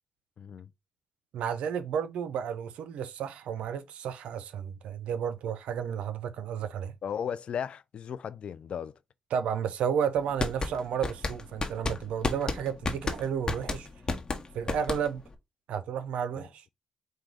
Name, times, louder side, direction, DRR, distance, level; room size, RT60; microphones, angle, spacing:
voice 1, 0.4-0.7 7.0-9.0 16.4-16.5, left 8 dB, 65° left, 0.3 m, -36 dB
voice 2, 1.3-6.9 9.3-13.9 14.5-15.2 15.7-16.6, right 8 dB, 90° right, 0.5 m, -32 dB
sound 1, 10.2-15.3, left 3 dB, 40° left, 0.9 m, -32 dB
4.6 x 2.2 x 3.8 m
cardioid pair, 60°, 2 cm